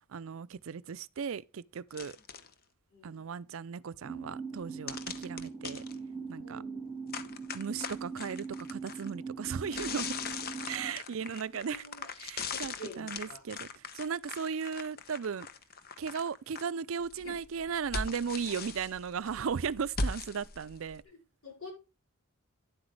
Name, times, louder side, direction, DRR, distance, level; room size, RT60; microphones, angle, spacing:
voice 1, 0.1-2.2 3.0-5.8 6.3-6.6 7.5-10.1 10.7-11.8 12.2-13.7 13.9-15.5 16.0-21.0, right 6 dB, 65° right, 0.5 m, -36 dB
sound 1, 1.9-2.5 4.9-5.9 7.1-9.1 9.6-16.6 17.0-21.0, left 4 dB, 45° left, 0.9 m, -40 dB
voice 2, 2.9-3.3 6.4-6.8 11.5-12.1 12.5-13.4 17.2-17.4 21.0-21.2 21.4-21.7, left 1 dB, 70° left, 5.5 m, -48 dB
sound 2, 4.0-10.9, right 5 dB, 15° right, 1.8 m, -41 dB
10.5 x 7.9 x 3.2 m
head